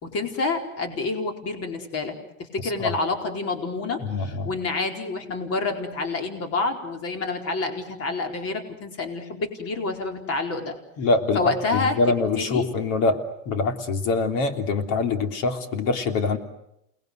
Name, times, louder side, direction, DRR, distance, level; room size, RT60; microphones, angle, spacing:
voice 1, 0.0-10.7 11.3-11.9 12.4-12.7, left 3 dB, 40° left, 4 dB, 4.4 m, -28 dB
voice 2, 2.6-2.9 4.0-4.5 11.0-16.4, left 3 dB, 55° left, 6 dB, 3.4 m, -24 dB
29.0 x 20.5 x 8.1 m, 0.81 s
supercardioid pair, 120°, 38 cm